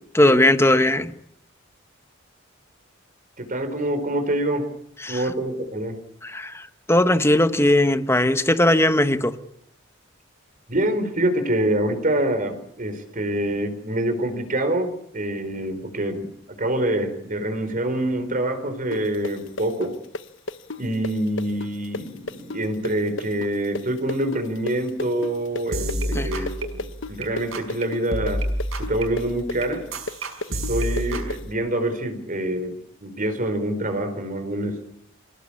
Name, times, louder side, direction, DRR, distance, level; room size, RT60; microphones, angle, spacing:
voice 1, 0.1-1.1 5.0-5.2 6.2-9.3 26.1-26.4, left 1 dB, 15° left, 10 dB, 1.3 m, -19 dB
voice 2, 3.4-4.7 5.1-6.0 10.7-20.0 20.8-26.8 27.1-28.5 28.8-29.9 30.5-34.9, right 1 dB, 40° right, 9 dB, 4.3 m, -26 dB
sound 1, 18.9-26.5 26.8-31.4, left 2 dB, 60° left, 1.0 m, -32 dB
sound 2, 25.7-27.2 27.5-27.8 28.1-31.4, right 1 dB, 85° right, 5.8 m, -29 dB
26.5 x 18.0 x 8.6 m, 0.72 s
head